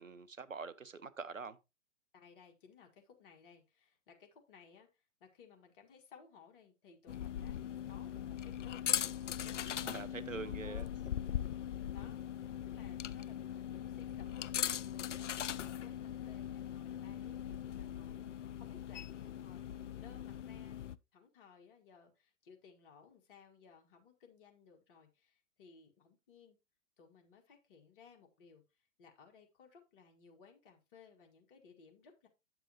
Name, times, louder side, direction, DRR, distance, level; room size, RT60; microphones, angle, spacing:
voice 1, 0.0-1.6 9.8-10.9, right 5 dB, 90° right, 0.7 m, -45 dB
voice 2, 2.1-7.6 7.9-9.1 9.4-9.8 10.6-10.9 11.9-20.8 21.1-26.6 27.0-32.3, left 6 dB, 45° left, 2.0 m, -61 dB
sound 1, 7.1-21.0, left 10 dB, 70° left, 0.5 m, -40 dB
8.7 x 6.8 x 2.9 m
figure-of-eight pair, 110°, 38 cm